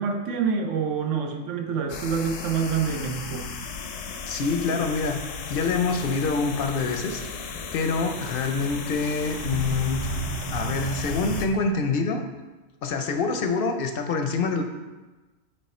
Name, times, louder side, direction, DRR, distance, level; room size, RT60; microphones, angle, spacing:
voice 1, 0.0-3.5, right 6 dB, 75° right, 4 dB, 1.1 m, -27 dB
sound 1, 1.9-11.5, left 5 dB, 90° left, 1.0 m, -36 dB
voice 2, 4.3-5.2 5.5-7.2 7.7-10.0 10.5-12.2 12.8-14.6, left 4 dB, 60° left, 6 dB, 0.7 m, -26 dB
sound 2, 9.2-12.0, right 3 dB, 50° right, 0.5 m, -32 dB
8.8 x 3.3 x 4.2 m, 1.2 s
omnidirectional pair, 1.3 m